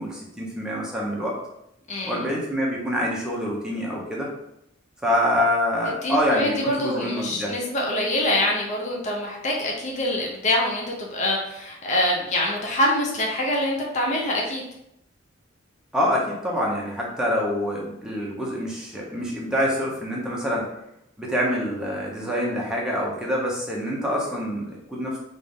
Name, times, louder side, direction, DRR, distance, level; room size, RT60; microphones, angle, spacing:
voice 1, 0.0-1.4 2.0-4.3 5.0-7.5 15.9-20.7 21.2-25.2, equal, 5° right, -4 dB, 0.9 m, -26 dB
voice 2, 1.9-2.3 6.0-14.6, left 1 dB, 35° left, -2 dB, 0.7 m, -25 dB
3.5 x 2.6 x 3.5 m, 0.80 s
head